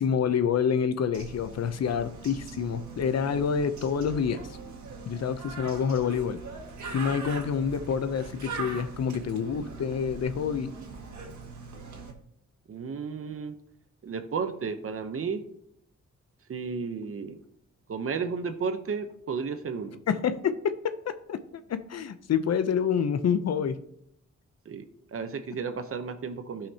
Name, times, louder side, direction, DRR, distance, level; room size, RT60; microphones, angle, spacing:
voice 1, 0.0-4.4 5.1-6.4 6.9-10.7 20.1-21.4 21.7-23.8, left 7 dB, 60° left, 11 dB, 0.6 m, -27 dB
Bird, 1.1-12.1, right 4 dB, 70° right, 1.7 m, -41 dB
voice 2, 12.7-13.5 14.0-15.4 16.5-17.4 17.9-20.0 24.7-24.9 25.1-26.7, right 5 dB, 50° right, 9 dB, 0.8 m, -33 dB
16.0 x 5.7 x 2.8 m, 0.71 s
wide cardioid pair, 170°, 29 cm